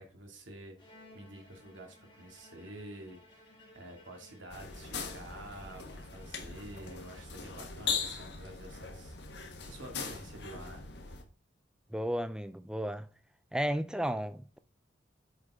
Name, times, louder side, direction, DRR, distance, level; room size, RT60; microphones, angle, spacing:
voice 1, 0.0-10.8, right 1 dB, 90° right, 2.3 m, -49 dB
Bowed string instrument, 0.8-7.7, left 1 dB, 25° left, 1.8 m, -59 dB
sound 1, 4.5-11.2, left 5 dB, 65° left, 1.3 m, -40 dB
voice 2, 11.9-13.1 13.5-14.6, equal, 5° right, 0.4 m, -33 dB
7.9 x 5.7 x 3.6 m
head